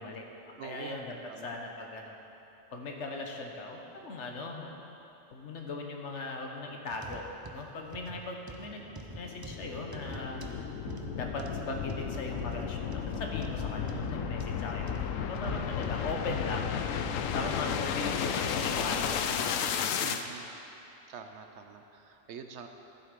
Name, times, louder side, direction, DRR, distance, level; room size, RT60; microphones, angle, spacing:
voice 1, 0.0-2.1 2.7-4.7 5.3-10.4 11.2-16.7 17.3-19.6, left 2 dB, 65° left, 2 dB, 1.3 m, -39 dB
voice 2, 0.6-1.6 20.0-20.5 21.1-22.7, right 6 dB, 65° right, 6 dB, 0.9 m, -45 dB
sound 1, 6.9-16.0 16.6-16.7 17.4-17.5, right 3 dB, 30° right, 0.4 m, -46 dB
sound 2, 8.7-20.2, left 8 dB, 90° left, 1.0 m, -33 dB
sound 3, 10.8-20.1, right 4 dB, 80° right, 1.4 m, -48 dB
12.0 x 7.7 x 5.2 m, 2.9 s
omnidirectional pair, 1.3 m